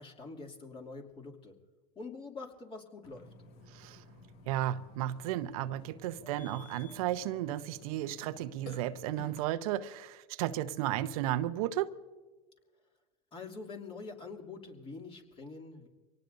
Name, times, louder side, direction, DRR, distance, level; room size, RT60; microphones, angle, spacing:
voice 1, 0.0-1.5 2.0-3.3 13.3-15.9, left 4 dB, 30° left, 2.8 m, -45 dB
Burping eructation, 3.0-9.4, left 3 dB, 55° left, 1.9 m, -53 dB
voice 2, 4.5-11.9, right 13 dB, 65° right, 0.9 m, -34 dB
25.0 x 18.5 x 2.7 m
hypercardioid pair, 105°, 20 cm